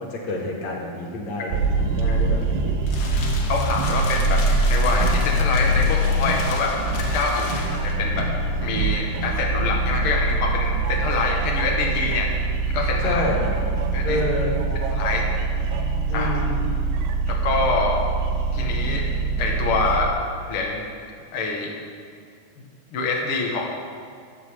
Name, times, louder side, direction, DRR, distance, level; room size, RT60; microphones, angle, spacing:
voice 1, 0.0-2.9 13.0-13.5 14.0-14.6 16.1-16.6, left 2 dB, 50° left, -1 dB, 2.7 m, -28 dB
sound 1, 1.5-20.1, right 2 dB, 85° right, 3.0 m, -23 dB
sound 2, 2.4-8.1, left 4 dB, 65° left, 2.7 m, -36 dB
voice 2, 3.5-8.3 8.6-12.3 12.6-13.2 13.9-14.2 14.9-15.2 16.1-16.3 17.3-18.0 18.5-19.0 19.4-20.1 20.5-20.8 21.3-21.7 22.6-23.7, left 4 dB, 90° left, -1 dB, 1.2 m, -25 dB
12.5 x 8.1 x 7.7 m, 2.3 s
omnidirectional pair, 4.9 m